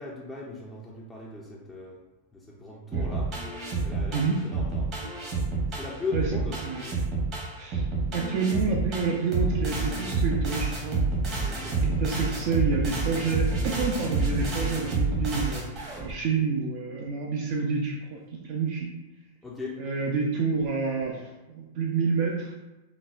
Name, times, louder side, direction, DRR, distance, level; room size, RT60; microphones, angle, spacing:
voice 1, 0.0-2.0 2.3-3.4 3.8-5.0 5.7-6.6 11.5-11.9 19.4-19.9, left 3 dB, 5° left, -4 dB, 0.4 m, -38 dB
sound 1, 2.9-16.1, right 3 dB, 35° right, 1.0 m, -28 dB
voice 2, 8.1-11.0 11.8-15.6 16.0-18.9 19.8-22.5, right 4 dB, 55° right, -1 dB, 0.5 m, -28 dB
3.8 x 2.1 x 2.5 m, 1.0 s
hypercardioid pair, 135°, 0 cm